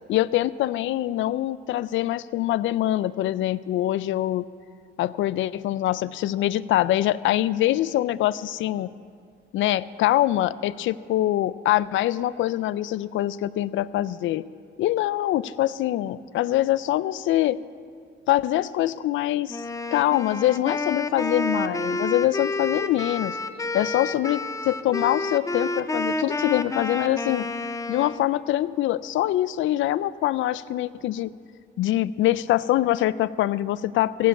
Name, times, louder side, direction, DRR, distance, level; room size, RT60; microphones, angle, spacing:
voice 1, 0.1-4.4 5.0-8.9 9.5-14.4 14.8-17.6 18.3-19.6 19.9-23.4 23.7-27.5 27.9-31.3 31.8-34.3, left 14 dB, 75° left, 18 dB, 0.4 m, -24 dB
Wind instrument woodwind instrument, 19.5-28.3, left 2 dB, 15° left, 0.6 m, -29 dB
15.5 x 7.2 x 8.5 m, 2.2 s
cardioid pair, 90°, 20 cm